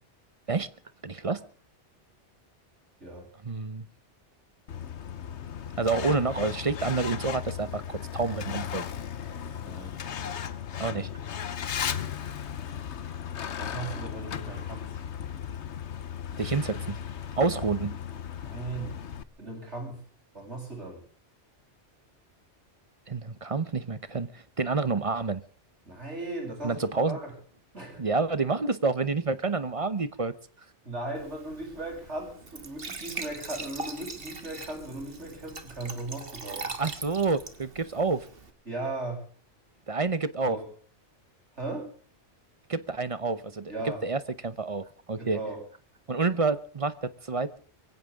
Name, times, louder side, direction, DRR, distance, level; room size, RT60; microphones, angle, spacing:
voice 1, 1.0-1.4 3.4-3.9 5.8-8.8 10.8-11.1 16.4-17.0 17.4-18.0 23.1-25.4 26.6-27.2 28.0-30.3 36.8-38.3 39.9-40.6 42.7-43.7 44.0-45.4 46.1-47.6, right 4 dB, 35° right, 0.8 m, -28 dB
Truck, 4.7-19.2, left 8 dB, 70° left, 1.2 m, -36 dB
voice 2, 9.6-10.0 13.6-15.0 18.4-19.0 19.4-20.0 20.3-21.0 25.8-27.3 27.7-28.1 30.8-36.7 38.7-39.2 40.4-40.6 41.6-41.9 43.7-44.0 45.2-45.6, right 2 dB, 75° right, 8.5 m, -37 dB
Glass / Trickle dribble / Fill (with liquid), 31.2-38.5, right 3 dB, 55° right, 1.8 m, -41 dB
24.0 x 16.0 x 3.6 m
omnidirectional pair, 1.2 m